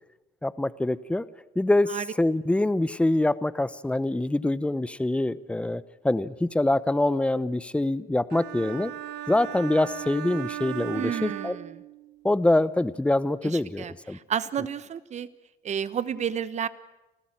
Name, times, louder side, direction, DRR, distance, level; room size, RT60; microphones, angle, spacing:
voice 1, 0.4-1.2 1.5-8.9 9.3-11.6 12.2-14.2, left 1 dB, 5° left, 16 dB, 0.8 m, -25 dB
sound 1, 8.3-12.2, right 13 dB, 80° right, 1.6 m, -37 dB
voice 2, 10.9-11.8 13.4-15.3 15.6-16.7, right 8 dB, 45° right, 15 dB, 1.2 m, -31 dB
28.5 x 14.5 x 9.0 m, 1.0 s
cardioid pair, 110°, 17 cm